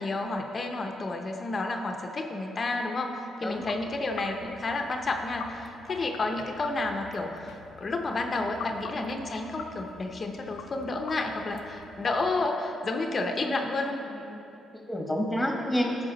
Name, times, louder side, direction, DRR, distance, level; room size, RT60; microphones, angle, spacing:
voice 1, 0.0-7.5 7.8-14.0, left 2 dB, 40° left, 4 dB, 0.6 m, -31 dB
sound 1, 3.5-12.4, left 6 dB, 85° left, 0.5 m, -45 dB
voice 2, 14.1-16.1, equal, ahead, 1 dB, 1.1 m, -30 dB
13.5 x 5.0 x 3.9 m, 2.8 s
cardioid pair, 90°, 0 cm